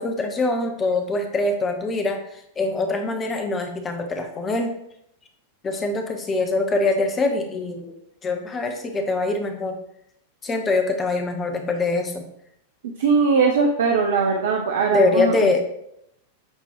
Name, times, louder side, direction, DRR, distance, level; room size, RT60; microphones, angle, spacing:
voice 1, 0.0-4.7 5.6-7.9 8.2-9.8 10.4-12.2 14.9-15.6, left 2 dB, 20° left, 5 dB, 1.2 m, -23 dB
voice 2, 13.0-15.3, right 5 dB, 60° right, 3 dB, 0.7 m, -20 dB
8.9 x 4.4 x 3.1 m, 0.75 s
figure-of-eight pair, 90°, 0 cm